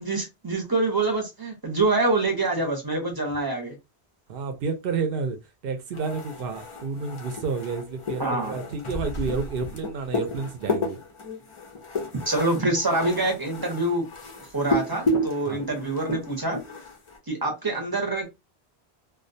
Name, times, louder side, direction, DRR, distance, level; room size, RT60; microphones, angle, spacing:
voice 1, 0.0-3.8 8.2-8.6 12.1-14.1 14.5-16.6 17.3-18.3, right 2 dB, 25° right, 0.6 m, -25 dB
voice 2, 4.3-5.4 5.6-11.0 15.5-15.6, right 5 dB, 65° right, 0.7 m, -30 dB
sound 1, 5.9-17.2, left 1 dB, 45° left, 0.4 m, -32 dB
2.3 x 2.2 x 2.6 m
omnidirectional pair, 1.1 m